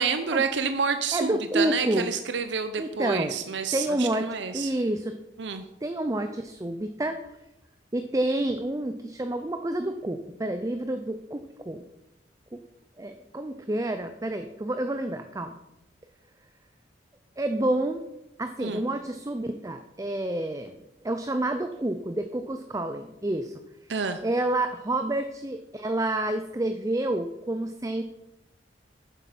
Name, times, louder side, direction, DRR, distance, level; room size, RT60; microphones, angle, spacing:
voice 1, 0.0-4.7 5.4-5.6 18.6-18.8 23.9-24.2, right 5 dB, 70° right, 9 dB, 0.7 m, -29 dB
voice 2, 1.1-2.1 2.8-3.4 3.7-5.2 5.8-7.2 7.9-11.8 12.5-12.6 13.0-15.6 17.4-18.0 18.4-20.8 21.0-23.6 24.2-28.0, right 1 dB, 20° right, 8 dB, 0.5 m, -29 dB
9.2 x 7.6 x 5.9 m, 0.93 s
head